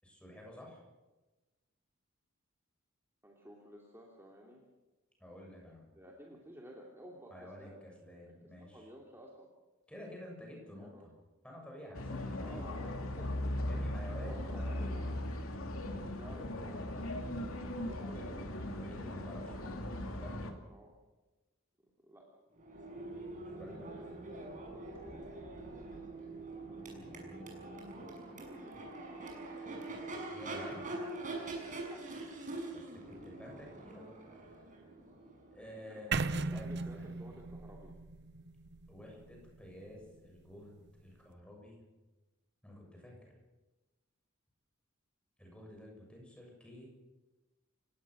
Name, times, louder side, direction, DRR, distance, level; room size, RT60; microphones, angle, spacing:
voice 1, 0.0-0.8 5.2-5.9 7.3-8.9 9.9-11.1 11.4-12.3 13.6-15.1 15.7-16.1 18.0-19.7 20.1-20.5 23.3-23.9 27.0-27.5 30.3-30.8 32.7-34.2 35.5-37.1 38.9-41.8 42.6-43.3 45.4-46.9, left 1 dB, 5° left, -1 dB, 7.2 m, -51 dB
voice 2, 3.2-4.6 5.9-7.9 8.2-9.5 10.8-11.1 12.4-13.3 14.2-15.3 15.9-17.0 17.8-18.6 20.7-20.9 21.8-22.3 28.4-28.8 31.6-32.1 35.5-36.2 36.5-37.9, equal, 10° right, -2 dB, 3.0 m, -54 dB
sound 1, 11.9-20.5, left 1 dB, 85° left, 2.8 m, -38 dB
Crowd / Race car auto racing / Accelerating revving vroom, 22.5-36.4, right 2 dB, 40° right, 6.3 m, -44 dB
sound 2, 36.1-40.1, right 4 dB, 55° right, 0.9 m, -38 dB
29.5 x 17.5 x 6.4 m, 1.2 s
head